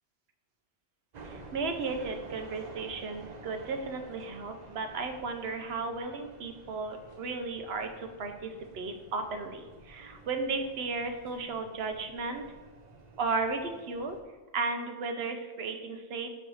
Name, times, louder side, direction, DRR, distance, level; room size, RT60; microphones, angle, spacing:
sound 1, 1.1-14.2, right 3 dB, 45° right, 0.8 m, -51 dB
voice 1, 1.2-12.4 13.2-14.2 14.5-16.3, right 4 dB, 70° right, 6 dB, 1.0 m, -34 dB
7.7 x 3.2 x 6.2 m, 1.3 s
omnidirectional pair, 1.1 m